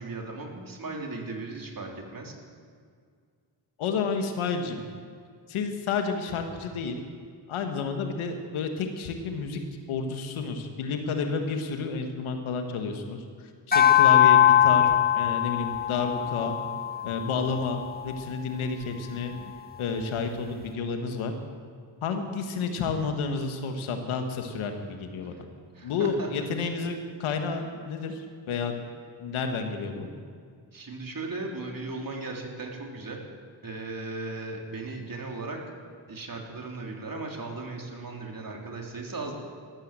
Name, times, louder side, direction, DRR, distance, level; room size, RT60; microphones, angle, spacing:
voice 1, 0.0-2.3 25.7-26.5 30.7-33.2 33.6-35.6 36.1-39.3, right 3 dB, 45° right, 0 dB, 3.6 m, -37 dB
voice 2, 3.8-4.8 5.5-7.0 7.5-9.6 9.9-14.8 15.1-16.5 17.0-19.3 19.8-21.3 22.0-25.5 25.8-28.7 29.2-30.1, left 5 dB, 90° left, 5 dB, 1.6 m, -30 dB
sound 1, 13.7-18.3, left 11 dB, 20° left, 1.5 m, -22 dB
14.5 x 13.5 x 7.5 m, 2.1 s
supercardioid pair, 50°, 47 cm